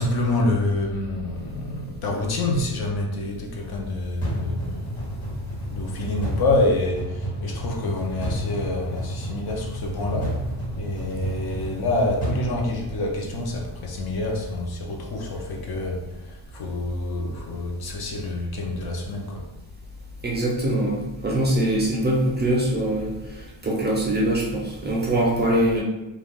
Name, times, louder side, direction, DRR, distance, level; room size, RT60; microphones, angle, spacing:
voice 1, 0.0-5.1 5.7-10.4 10.8-19.5, left 2 dB, 55° left, 1 dB, 0.5 m, -27 dB
sound 1, 4.2-13.4, right 1 dB, 85° left, 1.4 m, -31 dB
voice 2, 20.2-23.1 23.6-25.8, right 1 dB, 25° right, -4 dB, 0.4 m, -23 dB
2.4 x 2.3 x 3.3 m, 1.0 s
wide cardioid pair, 155°, 47 cm